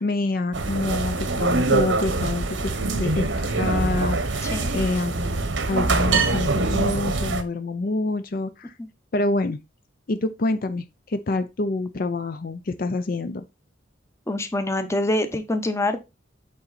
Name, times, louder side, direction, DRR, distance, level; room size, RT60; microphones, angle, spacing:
voice 1, 0.0-8.7 9.1-9.6 10.1-13.4, left 2 dB, 50° left, 0.5 m, -27 dB
sound 1, 0.5-7.4, right 3 dB, 80° right, 1.0 m, -24 dB
voice 2, 14.3-16.0, left 1 dB, 15° left, 0.8 m, -25 dB
8.6 x 3.9 x 4.1 m
head